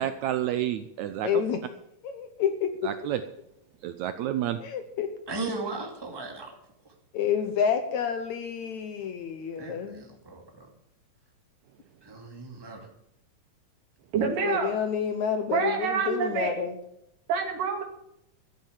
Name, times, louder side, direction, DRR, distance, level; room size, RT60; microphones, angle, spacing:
voice 1, 0.0-1.3 2.8-3.2 3.8-4.6, right 12 dB, 85° right, 10 dB, 1.6 m, -29 dB
voice 2, 1.2-1.6 2.0-2.9 4.6-5.1 7.1-10.1 14.2-16.8, left 7 dB, 70° left, 8 dB, 1.9 m, -29 dB
voice 3, 5.3-6.6 6.8-6.9 9.6-10.7 12.0-12.9, right 3 dB, 10° right, 1 dB, 1.7 m, -37 dB
voice 4, 14.1-14.7 15.5-16.5 17.3-17.8, right 5 dB, 70° right, 3 dB, 3.8 m, -27 dB
14.0 x 8.8 x 7.3 m, 0.79 s
omnidirectional pair, 4.0 m